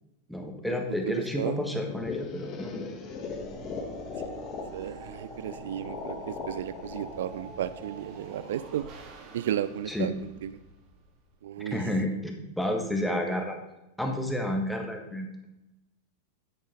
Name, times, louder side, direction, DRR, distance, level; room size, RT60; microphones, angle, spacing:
voice 1, 0.3-2.9 9.9-10.1 11.7-13.6 14.0-15.3, left 1 dB, ahead, 2 dB, 1.6 m, -30 dB
voice 2, 1.0-1.6 4.7-8.9 9.3-10.1 10.4-10.5 11.4-11.8, right 11 dB, 65° right, 15 dB, 0.3 m, -33 dB
sound 1, 1.6-8.5, left 4 dB, 35° left, 1.6 m, -39 dB
sound 2, 3.3-11.4, right 3 dB, 45° right, 2.2 m, -46 dB
9.5 x 8.9 x 3.9 m, 0.96 s
figure-of-eight pair, 90°, 0 cm